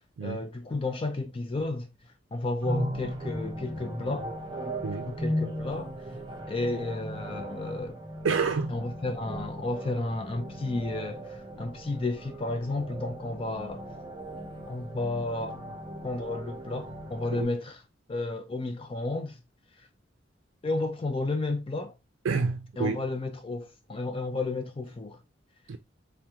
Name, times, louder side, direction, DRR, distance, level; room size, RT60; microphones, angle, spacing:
voice 1, 0.2-1.9 2.3-4.4 5.0-5.9 6.5-8.0 8.7-13.9 14.7-15.6 16.0-17.8 18.1-19.4 20.6-22.0 22.8-25.2, left 2 dB, 30° left, 0.4 m, -32 dB
sound 1, 2.6-17.4, equal, 25° right, 0.6 m, -37 dB
voice 2, 8.2-8.7 17.3-17.5 22.2-23.0 25.7-25.8, right 4 dB, 90° right, 0.4 m, -28 dB
3.5 x 2.2 x 2.8 m
head